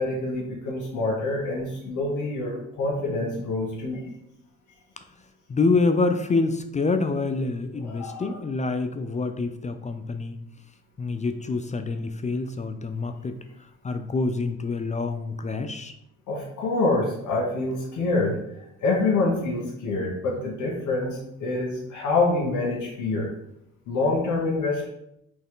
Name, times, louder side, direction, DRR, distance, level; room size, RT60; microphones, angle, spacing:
voice 1, 0.0-4.0 7.8-8.3 16.3-18.4 18.8-23.3 23.9-24.9, left 2 dB, 80° left, -3 dB, 1.3 m, -26 dB
voice 2, 5.5-10.4 11.0-13.4 13.8-15.9, left 3 dB, 25° left, 8 dB, 0.4 m, -26 dB
4.3 x 3.3 x 3.8 m, 0.79 s
cardioid pair, 90°, 30 cm